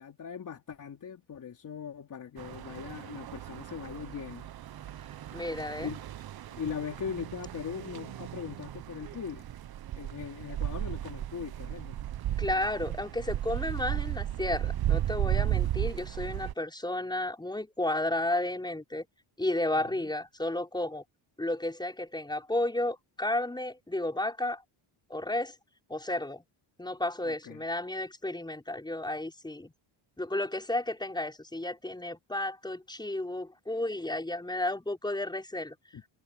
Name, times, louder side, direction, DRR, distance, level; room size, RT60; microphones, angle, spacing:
voice 1, 0.0-4.5 5.8-6.1 6.6-9.4 9.9-12.0 20.0-20.1 27.2-27.6 35.9-36.0, left 7 dB, 40° left, 3.5 m, -40 dB
sound 1, 2.4-16.5, right 12 dB, 50° right, 1.1 m, -35 dB
voice 2, 5.3-5.9 12.4-19.0 19.4-21.0 21.4-24.6 25.1-25.5 25.9-26.4 26.8-29.7 30.2-35.7, left 1 dB, 10° left, 5.6 m, -32 dB
cardioid pair, 135°, 47 cm